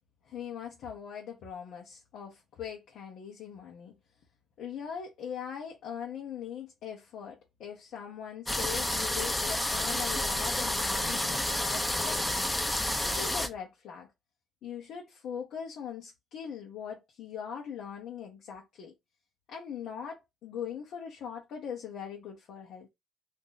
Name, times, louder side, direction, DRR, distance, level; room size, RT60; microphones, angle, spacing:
voice 1, 0.2-3.9 4.6-12.3 13.0-14.1 14.6-18.9 19.5-22.9, left 8 dB, 80° left, 0.9 m, -41 dB
sound 1, 8.5-13.5, left 1 dB, 10° left, 0.6 m, -30 dB
2.7 x 2.6 x 3.9 m
cardioid pair, 90°, 0 cm